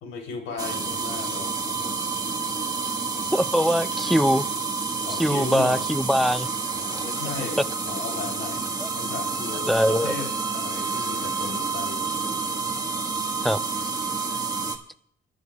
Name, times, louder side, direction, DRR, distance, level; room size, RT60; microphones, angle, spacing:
voice 1, 0.0-2.1 5.0-5.9 6.8-8.6 9.0-12.2, left 4 dB, 85° left, 2 dB, 3.3 m, -36 dB
sound 1, 0.6-14.8, right 4 dB, 20° right, 1.5 m, -29 dB
voice 2, 3.3-4.5 5.1-6.5 8.8-8.9 9.7-10.1 13.4-13.6, equal, ahead, 12 dB, 0.5 m, -22 dB
29.5 x 11.5 x 2.3 m, 0.68 s
cardioid pair, 90°, 20 cm